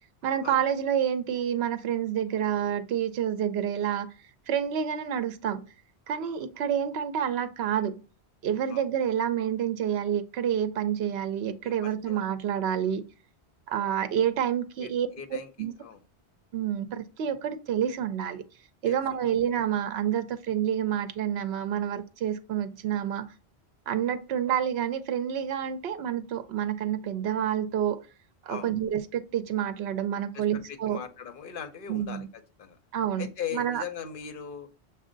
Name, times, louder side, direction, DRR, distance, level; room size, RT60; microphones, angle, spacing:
voice 1, 0.2-4.1 4.5-5.6 6.1-8.0 8.4-13.1 13.7-15.1 15.6-15.7 16.5-18.4 18.8-23.3 23.9-28.0 28.5-31.0 31.9-32.3 32.9-33.3 33.5-33.8, right 9 dB, 70° right, 0.8 m, -28 dB
voice 2, 11.6-12.2 14.8-15.5 15.8-16.0 18.8-19.0 28.5-28.7 30.3-32.8 33.2-34.7, left 8 dB, 55° left, 0.8 m, -39 dB
6.1 x 2.2 x 3.7 m
omnidirectional pair, 1.1 m